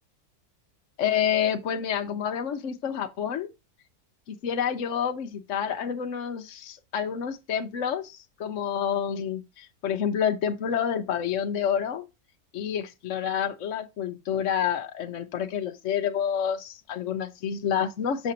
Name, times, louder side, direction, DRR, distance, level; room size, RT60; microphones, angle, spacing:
voice 1, 1.0-3.5 4.3-12.0 12.5-18.3, left 8 dB, 55° left, 1.0 m, -28 dB
6.7 x 6.3 x 2.8 m
omnidirectional pair, 1.8 m